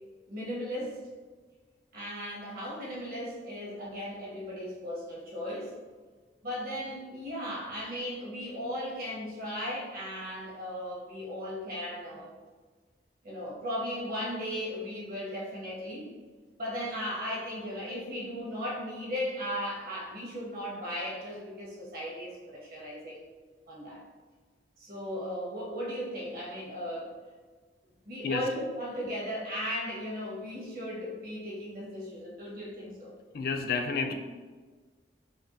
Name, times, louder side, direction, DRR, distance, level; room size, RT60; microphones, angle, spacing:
voice 1, 0.3-1.0 1.9-5.7 6.4-12.3 13.2-16.1 16.6-23.3 23.7-24.0 24.8-27.1 28.0-33.1, equal, 60° right, -5 dB, 1.2 m, -36 dB
voice 2, 33.3-34.1, left 4 dB, 60° left, 5 dB, 0.4 m, -30 dB
4.3 x 2.8 x 2.7 m, 1.4 s
head